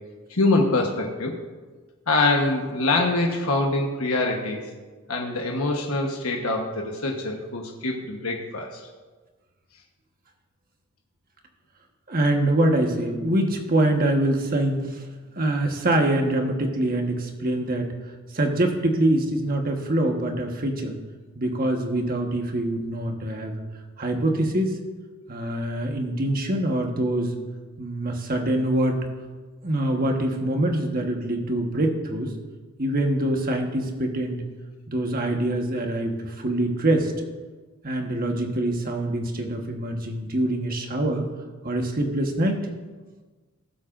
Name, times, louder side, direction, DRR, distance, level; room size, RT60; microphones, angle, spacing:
voice 1, 0.3-1.4 2.1-4.6 5.1-8.8, left 2 dB, 80° left, 1 dB, 1.2 m, -24 dB
voice 2, 12.1-15.0 15.4-17.9 18.3-21.0 21.3-23.6 24.0-24.8 25.3-27.3 27.8-29.0 29.6-32.3 32.8-34.4 34.9-37.1 37.8-41.3 41.6-42.6, right 1 dB, 40° right, 3 dB, 1.3 m, -24 dB
19.0 x 7.8 x 2.6 m, 1.3 s
head